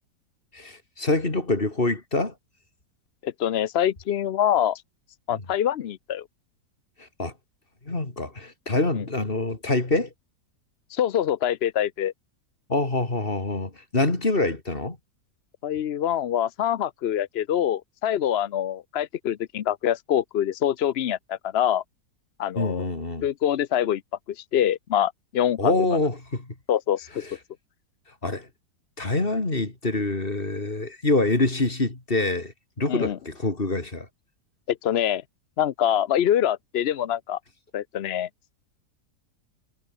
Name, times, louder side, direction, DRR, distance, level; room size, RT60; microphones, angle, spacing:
voice 1, 0.5-2.3 5.3-5.4 7.2-7.3 7.9-10.1 12.7-15.0 22.6-23.3 25.6-26.5 27.2-27.3 28.2-28.5 29.0-34.1, left 2 dB, 35° left, 3.6 m, -25 dB
voice 2, 3.2-4.8 5.3-6.2 8.9-9.0 10.9-12.1 15.6-21.8 22.4-22.9 23.2-24.0 24.4-25.7 26.7-27.2 32.9-33.2 34.7-35.2 35.6-37.4 37.7-38.3, left 10 dB, 60° left, 0.7 m, -25 dB
omnidirectional pair, 1.7 m